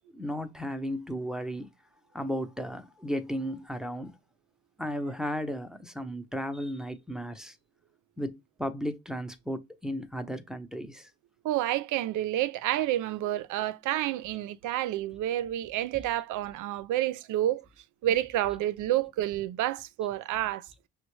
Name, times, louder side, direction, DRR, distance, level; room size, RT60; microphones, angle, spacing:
voice 1, 0.1-1.7 2.1-4.2 4.8-7.6 8.2-11.1 15.9-16.0, equal, ahead, 0.6 m, -34 dB
voice 2, 11.4-17.6 18.0-20.7, right 13 dB, 85° right, 0.5 m, -29 dB
6.0 x 2.2 x 3.1 m
cardioid pair, 90°, 30 cm